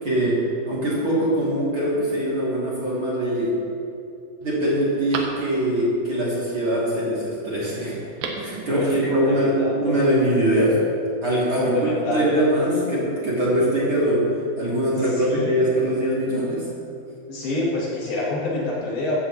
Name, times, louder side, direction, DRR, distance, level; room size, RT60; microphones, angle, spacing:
voice 1, 0.0-3.6 4.4-8.0 8.4-10.8 11.2-11.7 12.1-14.3 14.6-16.6, right 1 dB, 40° right, -7 dB, 2.9 m, -22 dB
Telephone, 2.8-3.4 3.9-4.0 4.4-5.9 7.9-8.6 8.9-9.0, right 5 dB, 75° right, 2.8 m, -36 dB
voice 2, 8.7-10.0 11.6-12.4 14.8-15.5 17.3-19.2, left 2 dB, 80° left, -6 dB, 4.5 m, -27 dB
15.5 x 12.5 x 3.0 m, 2.7 s
omnidirectional pair, 4.2 m